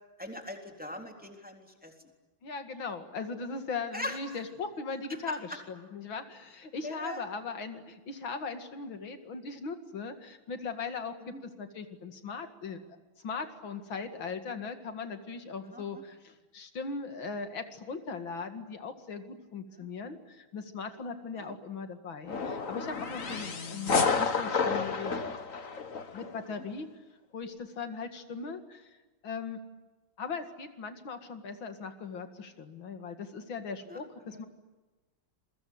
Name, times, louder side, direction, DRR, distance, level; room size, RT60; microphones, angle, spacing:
voice 1, 0.2-1.9 3.9-4.2 5.1-5.2 6.8-7.3 11.3-11.4 15.7-16.0 19.7-19.9 21.4-21.5 33.9-34.0 34.3-34.4, left 1 dB, 5° right, 3 dB, 3.5 m, -41 dB
voice 2, 2.4-12.8 13.2-25.1 26.1-26.9 27.3-29.0 29.2-29.6 30.2-34.5, left 4 dB, 80° left, 7 dB, 2.8 m, -39 dB
sound 1, 22.3-26.3, left 5 dB, 45° left, 2.1 m, -30 dB
27.5 x 23.0 x 9.5 m, 1.2 s
omnidirectional pair, 2.1 m